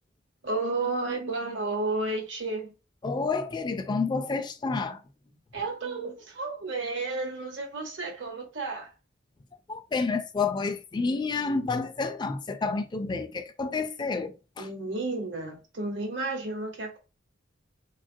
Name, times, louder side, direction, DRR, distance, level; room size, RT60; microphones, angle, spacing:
voice 1, 0.4-2.7 5.5-8.9 14.6-17.0, right 3 dB, 70° right, 1.0 m, -32 dB
voice 2, 3.0-5.0 9.7-14.7, left 4 dB, 25° left, 0.3 m, -29 dB
3.2 x 2.3 x 2.6 m
head